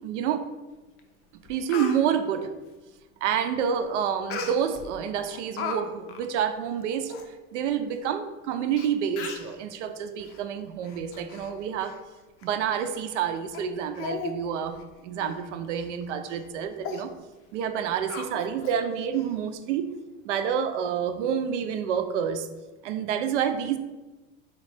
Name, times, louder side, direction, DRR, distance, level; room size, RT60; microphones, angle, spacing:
voice 1, 0.0-0.4 1.5-2.5 3.2-7.1 7.5-11.9 12.4-14.7 15.0-17.1 17.5-19.9 20.2-22.5 22.8-23.8, right 8 dB, 70° right, 8 dB, 0.6 m, -28 dB
Speech, 1.0-1.1 1.4-2.0 4.3-4.9 5.3-5.8 6.1-6.3 6.8-6.9 7.1-7.3 8.0-8.1 8.8-8.9 9.2-9.5 10.2-10.4 10.8-11.5 11.8-12.0 12.4-12.5 13.1-13.2 13.5-13.7 14.0-14.4 14.7-14.8 15.2-15.4 15.8-15.9 16.3-16.5 16.8-17.0 18.1-18.8 19.1-19.2, left 5 dB, 40° left, 0.5 m, -36 dB
4.1 x 2.4 x 3.2 m, 1.2 s
hypercardioid pair, 95°, 37 cm